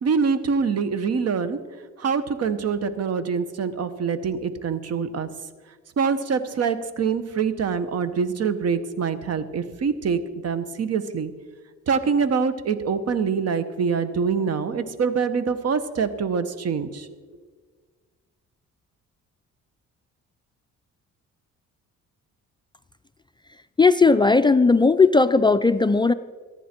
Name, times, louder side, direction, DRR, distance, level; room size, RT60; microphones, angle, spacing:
voice 1, 0.0-1.6 2.0-5.3 6.0-11.3 11.9-17.1, right 5 dB, 55° right, 12 dB, 1.2 m, -25 dB
voice 2, 23.8-26.1, left 4 dB, 15° left, 10 dB, 0.4 m, -17 dB
23.5 x 10.0 x 4.5 m, 1.5 s
cardioid pair, 90°, 30 cm